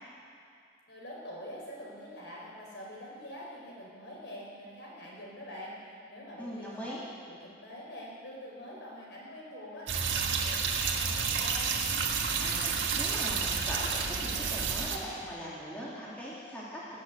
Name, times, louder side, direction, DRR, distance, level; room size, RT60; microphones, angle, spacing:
voice 1, 0.9-5.7 6.1-6.9 7.2-11.7, equal, 65° left, -4 dB, 5.2 m, -45 dB
voice 2, 6.4-7.0 12.4-17.0, equal, 5° left, -8 dB, 2.8 m, -41 dB
sound 1, 9.9-15.0, right 5 dB, 75° right, 1.5 m, -30 dB
19.5 x 8.4 x 8.2 m, 2.4 s
head